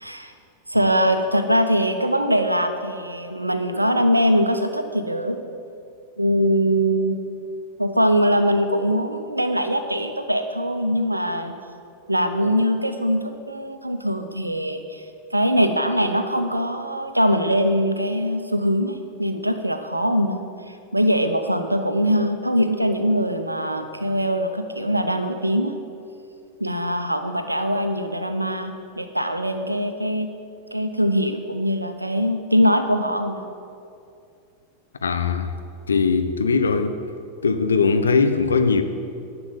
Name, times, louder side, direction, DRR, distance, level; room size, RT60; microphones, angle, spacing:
voice 1, 0.0-0.3 0.7-5.4 6.2-7.2 7.8-11.5 12.1-15.0 15.3-25.8 26.6-30.3 30.7-33.4, equal, 85° right, 0.8 m, -22 dB
voice 2, 35.0-35.5 35.9-37.0 37.4-38.8, left 5 dB, 70° left, 0.8 m, -20 dB
10.5 x 7.0 x 8.1 m
figure-of-eight pair, 90°, 0 cm